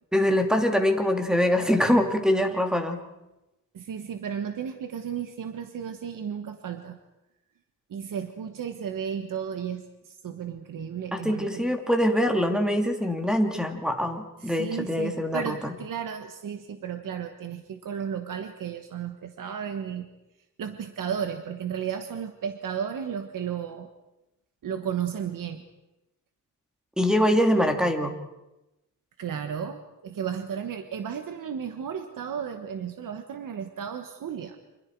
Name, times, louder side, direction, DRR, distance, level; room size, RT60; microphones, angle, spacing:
voice 1, 0.1-3.0 11.1-15.7 27.0-28.1, equal, ahead, 4 dB, 2.7 m, -24 dB
voice 2, 3.7-7.0 7.9-11.8 14.4-20.1 20.6-23.9 24.6-25.6 29.2-34.6, right 8 dB, 80° right, 7 dB, 1.4 m, -34 dB
30.0 x 26.0 x 4.7 m, 0.97 s
wide cardioid pair, 130°, 32 cm